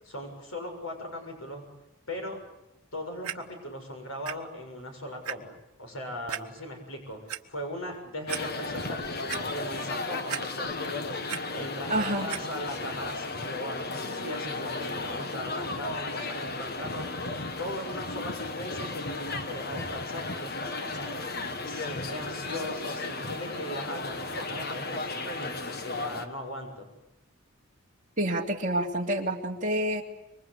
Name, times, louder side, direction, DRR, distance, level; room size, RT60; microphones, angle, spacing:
voice 1, 0.1-1.7 2.1-2.4 2.9-11.1 11.5-26.9, left 1 dB, 70° left, 3 dB, 6.9 m, -39 dB
Clock, 3.2-3.3 4.3-4.4 4.8-4.9 5.2-5.3 6.3-6.4 7.1-7.4 7.9-8.0 8.3-8.4 8.9-9.4 10.3-10.8 11.1-11.4 12.3-12.4 13.1-13.2, right 9 dB, 85° right, 1.2 m, -35 dB
sound 1, 8.3-26.3, left 3 dB, 45° left, 1.5 m, -34 dB
voice 2, 11.9-12.3 28.2-30.0, right 1 dB, 35° right, -1 dB, 3.1 m, -28 dB
26.5 x 24.0 x 8.3 m, 0.90 s
head